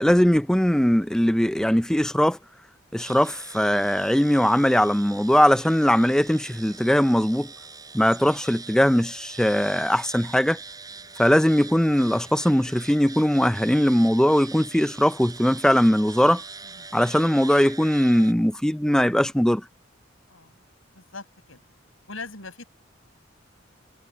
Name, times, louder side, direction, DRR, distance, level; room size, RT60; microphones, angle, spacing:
voice 1, 0.0-2.4 2.9-7.5 7.9-10.6 11.2-16.4 16.9-19.6, equal, 5° left, 0.4 m, -20 dB
sound 1, 3.0-18.3, right 4 dB, 20° right, 4.7 m, -43 dB
voice 2, 20.9-21.6 22.1-22.7, left 3 dB, 80° left, 5.9 m, -41 dB
head